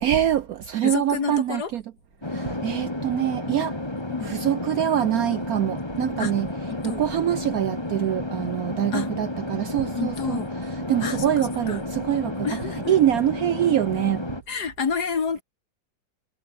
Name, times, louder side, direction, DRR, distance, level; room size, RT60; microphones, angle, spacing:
voice 1, 0.0-1.8 2.3-3.8 4.2-6.5 6.8-10.4 10.9-12.5 12.9-14.2, right 11 dB, 65° right, 0.9 m, -24 dB
voice 2, 0.8-1.7 4.1-4.3 6.2-6.3 6.7-7.0 8.9-9.1 10.0-10.5 11.0-11.8 12.4-13.0 14.5-15.4, left 5 dB, 55° left, 2.5 m, -29 dB
sound 1, 2.2-14.4, left 1 dB, 15° left, 2.5 m, -31 dB
omnidirectional pair, 2.0 m